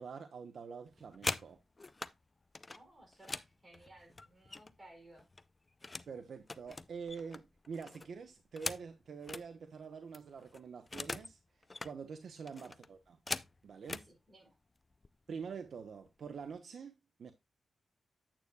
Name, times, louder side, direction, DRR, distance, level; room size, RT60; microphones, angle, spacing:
voice 1, 0.0-1.6 6.1-11.4 11.8-13.2 13.6-14.0 15.3-16.9 17.2-17.3, right 6 dB, 65° right, 1.0 m, -46 dB
sound 1, 0.9-2.1 2.5-4.9 5.2-6.1 6.4-9.5 9.8-9.9 10.1-11.3 11.6-11.9 12.5-14.1 14.9-15.1 15.4-15.8 16.1-16.6, left 3 dB, 25° left, 0.5 m, -43 dB
voice 2, 2.7-5.3 13.9-14.6, right 1 dB, 20° right, 4.6 m, -59 dB
9.1 x 8.4 x 2.3 m
wide cardioid pair, 115°, 0 cm